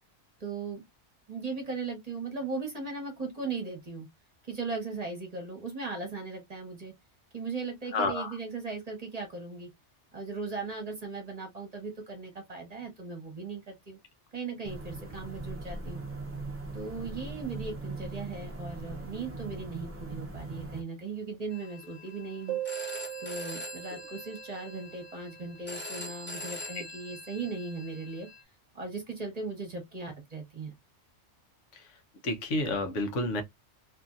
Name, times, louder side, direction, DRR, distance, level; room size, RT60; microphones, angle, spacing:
voice 1, 0.4-0.8 1.3-4.1 4.5-6.9 7.3-9.7 10.1-14.0 14.3-16.0 16.7-22.6 23.2-28.3 28.7-30.7, right 4 dB, 35° right, 1.0 m, -38 dB
voice 2, 7.9-8.3 31.7-31.9 32.2-33.4, left 2 dB, 85° left, 1.1 m, -30 dB
sound 1, 14.6-20.8, right 2 dB, 20° right, 0.4 m, -40 dB
Telephone, 21.5-28.4, left 1 dB, 10° left, 0.8 m, -43 dB
sound 2, 22.5-25.8, right 13 dB, 70° right, 0.8 m, -40 dB
2.9 x 2.6 x 2.3 m
omnidirectional pair, 1.2 m